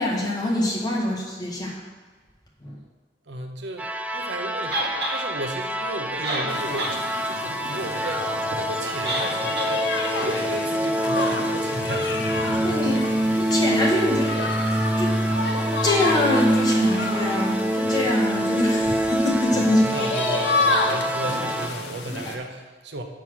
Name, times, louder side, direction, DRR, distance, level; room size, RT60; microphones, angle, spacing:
voice 1, 0.0-1.8 2.6-2.8 12.6-13.1 13.4-14.4 15.0-15.2 15.8-19.9 22.1-22.3, left 1 dB, 25° left, -3 dB, 1.7 m, -24 dB
voice 2, 3.3-9.9 10.2-12.3 19.7-23.0, right 2 dB, 85° right, 5 dB, 0.9 m, -34 dB
sound 1, 3.8-21.7, right 1 dB, 10° right, 0.3 m, -26 dB
sound 2, 4.7-5.2 6.0-6.1 6.2-7.0 7.3-7.4 9.0-9.3 9.6-9.7, right 1 dB, 65° right, 1.7 m, -27 dB
sound 3, 6.5-22.4, left 2 dB, 85° left, 1.0 m, -30 dB
7.2 x 6.2 x 6.2 m, 1.4 s
head